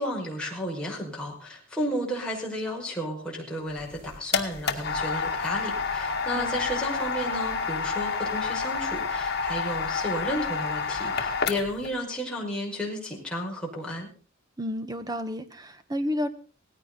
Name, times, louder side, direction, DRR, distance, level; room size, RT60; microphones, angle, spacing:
voice 1, 0.0-14.1, equal, 5° left, -3 dB, 5.4 m, -33 dB
sound 1, 3.8-11.9, left 5 dB, 55° left, 2.1 m, -29 dB
voice 2, 14.6-16.3, left 1 dB, 20° right, 10 dB, 1.4 m, -31 dB
18.5 x 16.0 x 4.1 m, 0.36 s
head